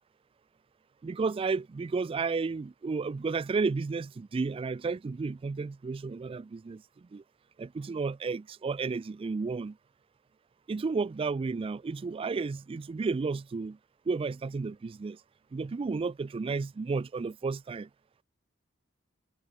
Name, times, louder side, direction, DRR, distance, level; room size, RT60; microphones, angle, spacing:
voice 1, 1.0-6.8 7.1-7.2 7.6-9.8 10.7-13.8 14.1-15.2 15.5-17.9, right 4 dB, 30° right, 0.3 m, -32 dB
head